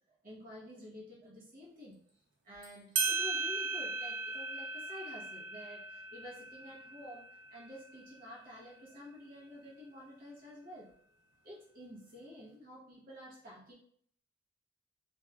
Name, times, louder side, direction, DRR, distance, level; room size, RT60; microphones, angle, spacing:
voice 1, 0.2-2.0 2.4-10.9 11.4-13.7, equal, 50° right, -5 dB, 1.0 m, -50 dB
sound 1, 2.6-2.7 3.0-8.0, right 4 dB, 70° right, 0.5 m, -37 dB
3.0 x 2.6 x 2.3 m, 0.62 s
head